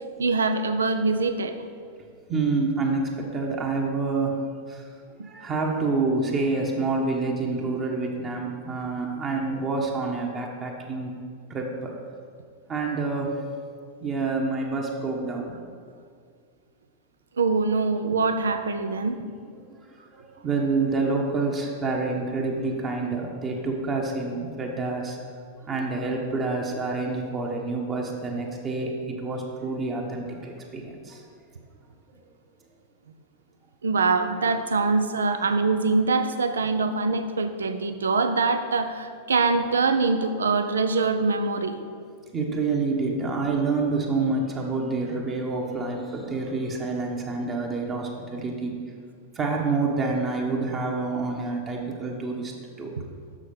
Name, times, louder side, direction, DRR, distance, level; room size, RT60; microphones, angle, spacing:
voice 1, 0.2-1.6 17.4-19.2 33.8-41.8, right 4 dB, 70° right, 8 dB, 0.5 m, -24 dB
voice 2, 2.3-4.4 4.7-4.9 5.2-11.1 11.5-11.9 12.7-13.4 14.0-15.6 20.0-25.2 25.6-31.2 42.3-48.7 49.3-52.5 52.8-52.9, right 3 dB, 25° right, 0 dB, 1.1 m, -27 dB
6.5 x 6.3 x 5.4 m, 2.1 s
figure-of-eight pair, 90°, 0 cm